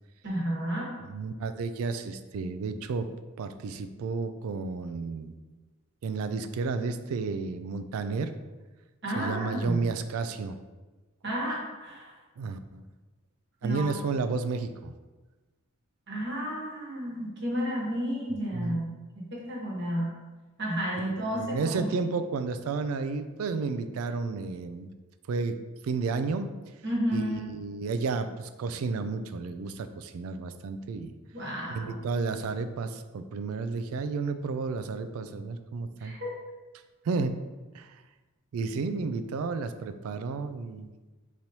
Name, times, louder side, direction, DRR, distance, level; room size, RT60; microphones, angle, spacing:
voice 1, 0.2-0.9 9.0-9.9 11.2-12.1 13.6-13.9 16.1-20.1 20.6-21.9 26.8-27.4 31.3-32.0 36.0-36.3, equal, 50° right, -4 dB, 1.2 m, -32 dB
voice 2, 1.0-3.1 3.4-5.4 6.0-8.3 9.2-10.6 12.4-12.8 13.6-14.9 18.5-18.8 21.0-24.9 25.3-25.6 25.8-26.5 27.1-31.1 31.7-36.2 37.0-37.4 37.7-38.0 38.5-40.9, right 4 dB, 80° right, 10 dB, 0.3 m, -32 dB
5.2 x 3.1 x 2.8 m, 1.2 s
head